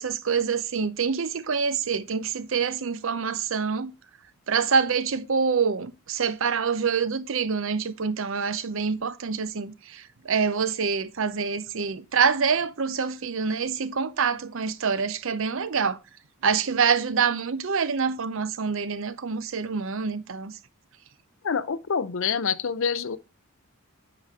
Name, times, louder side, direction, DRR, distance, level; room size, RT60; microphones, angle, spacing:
voice 1, 0.0-3.9 4.5-16.0 16.4-20.6, right 5 dB, 60° right, 0.6 m, -26 dB
voice 2, 21.4-23.2, left 6 dB, 60° left, 0.6 m, -26 dB
9.2 x 5.0 x 3.7 m
head